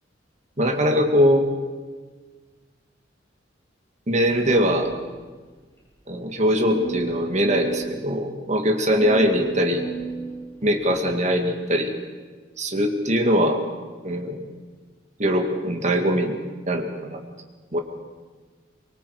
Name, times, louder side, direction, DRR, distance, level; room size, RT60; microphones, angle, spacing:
voice 1, 0.6-1.5 4.1-4.9 6.1-9.8 10.6-11.9 12.6-13.6 14.0-14.4 15.2-16.4 16.7-17.2 17.7-17.8, equal, 40° right, 4 dB, 2.2 m, -21 dB
sound 1, 4.5-5.5 5.8-5.9 6.7-8.0 9.0-11.0, right 4 dB, 15° left, 7.1 m, -34 dB
23.5 x 23.0 x 5.0 m, 1.4 s
head